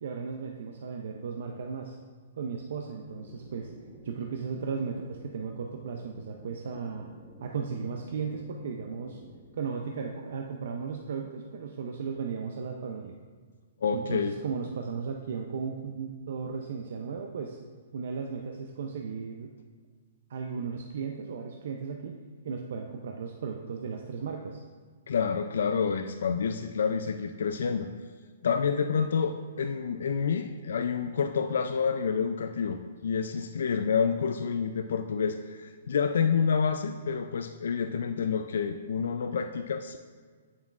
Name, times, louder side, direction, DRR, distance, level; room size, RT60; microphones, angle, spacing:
voice 1, 0.0-2.0 2.4-3.7 4.0-7.1 7.4-9.2 9.6-13.2 13.9-17.6 17.9-19.5 20.3-22.2 22.4-24.6, right 5 dB, 70° right, 2 dB, 0.5 m, -35 dB
sound 1, 3.0-9.5, equal, ahead, 1.1 m, -51 dB
voice 2, 13.8-14.4 25.1-27.9 28.4-40.0, left 6 dB, 75° left, 7 dB, 0.3 m, -28 dB
8.4 x 7.1 x 2.4 m, 1.5 s
hypercardioid pair, 140°, 0 cm